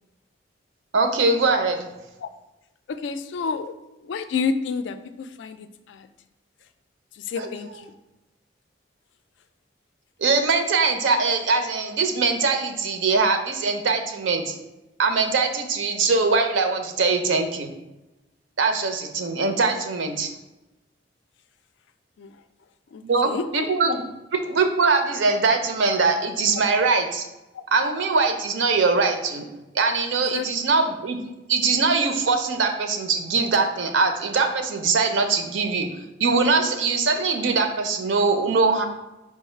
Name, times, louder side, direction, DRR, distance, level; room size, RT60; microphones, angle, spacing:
voice 1, 0.9-1.9 7.4-7.8 10.2-14.5 15.0-17.7 18.6-20.3 23.0-24.0 24.3-27.2 27.7-29.5 29.7-31.2 31.5-35.9 36.2-38.9, right 4 dB, 80° right, 6 dB, 0.5 m, -22 dB
voice 2, 2.9-3.7 4.1-6.1 7.3-7.9 22.2-22.3 22.9-23.4 27.6-27.7 30.3-30.5, left 5 dB, 70° left, 10 dB, 0.3 m, -29 dB
4.7 x 2.4 x 4.4 m, 1.0 s
head